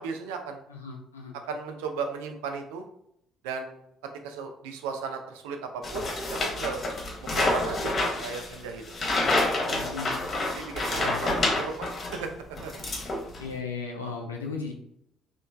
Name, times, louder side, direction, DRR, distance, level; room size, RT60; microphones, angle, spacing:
voice 1, 0.0-0.6 1.4-2.9 3.4-3.8 4.2-6.8 7.2-8.8 10.5-12.3 12.6-12.8, right 5 dB, 70° right, 5 dB, 0.3 m, -36 dB
voice 2, 0.7-1.4 9.7-10.2 10.9-11.3 13.4-14.7, left 5 dB, 85° left, 1 dB, 0.3 m, -36 dB
sound 1, 5.8-12.2 12.6-13.5, left 2 dB, 35° left, 0.8 m, -28 dB
3.0 x 2.1 x 2.3 m, 0.75 s
figure-of-eight pair, 50°, 0 cm